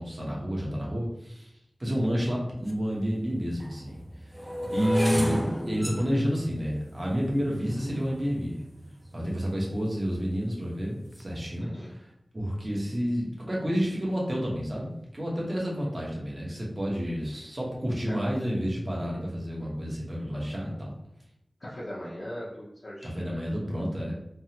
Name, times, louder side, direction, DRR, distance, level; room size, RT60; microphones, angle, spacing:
voice 1, 0.0-1.5 1.8-4.0 4.2-4.3 4.7-8.6 9.1-12.0 12.3-20.9 23.0-24.1, equal, 35° right, -4 dB, 1.0 m, -30 dB
sound 1, 2.7-2.8 3.5-9.7 10.3-10.7 11.0-11.3, equal, 10° right, 0.5 m, -33 dB
voice 2, 4.7-5.1 11.6-11.9 18.1-18.2 21.6-23.4, equal, 65° left, -8 dB, 0.7 m, -40 dB
3.5 x 2.1 x 2.8 m, 0.80 s
wide cardioid pair, 55°, 0 cm